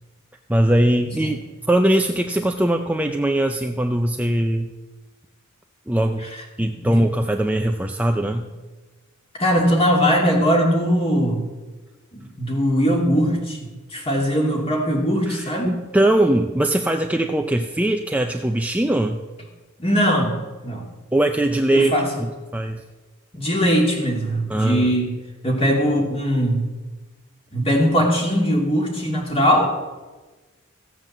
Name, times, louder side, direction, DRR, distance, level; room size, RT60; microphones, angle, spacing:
voice 1, 0.5-1.4 1.7-4.7 5.9-6.2 6.6-8.5 15.3-19.2 21.1-21.9 22.2-22.8 24.5-24.9, right 1 dB, 5° right, 4 dB, 0.5 m, -21 dB
voice 2, 6.6-6.9 9.4-11.4 12.1-13.6 13.9-15.7 19.8-20.3 20.6-20.8 21.7-22.1 23.3-25.1 25.4-26.7 27.5-29.7, equal, 30° left, 0 dB, 2.7 m, -20 dB
15.5 x 7.8 x 7.3 m, 1.3 s
head